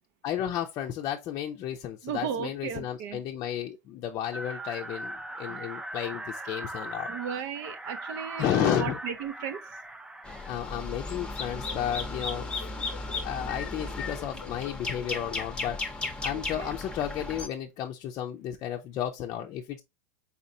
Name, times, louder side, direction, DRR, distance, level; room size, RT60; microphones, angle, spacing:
voice 1, 0.2-7.1 8.4-9.0 10.5-12.5 13.2-15.8 16.2-19.8, left 10 dB, 40° left, 0.5 m, -32 dB
voice 2, 2.0-3.2 5.5-5.6 7.1-9.6 16.3-16.7, right 8 dB, 60° right, 0.7 m, -35 dB
sound 1, 4.3-10.5, right 1 dB, 5° right, 0.5 m, -39 dB
sound 2, 10.2-17.5, left 3 dB, 10° left, 0.8 m, -35 dB
sound 3, 11.5-15.4, left 9 dB, 80° left, 0.7 m, -47 dB
4.2 x 4.0 x 2.7 m
hypercardioid pair, 115°, 9 cm